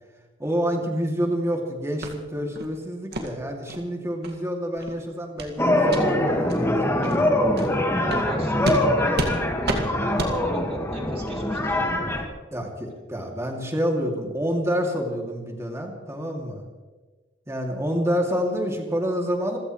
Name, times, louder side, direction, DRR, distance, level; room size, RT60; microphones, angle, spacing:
voice 1, 0.4-7.1 12.5-16.6 17.5-19.6, equal, 15° right, 1 dB, 2.6 m, -28 dB
sound 1, 2.0-2.1 2.5-2.7 3.1-3.3 3.7-3.8 4.2-4.3 4.7-4.9 5.4-5.5 5.9-6.0 6.5-6.6 7.0-7.2 7.6-7.7 8.1-8.2 8.6-8.8 9.1-9.3 9.6-9.8 10.2-10.3, right 2 dB, 55° right, 2.1 m, -29 dB
sound 2, 5.6-12.2, left 1 dB, 15° left, 1.8 m, -23 dB
voice 2, 7.7-11.8, right 1 dB, 30° right, 0 dB, 3.4 m, -39 dB
27.0 x 15.5 x 3.2 m, 1.3 s
head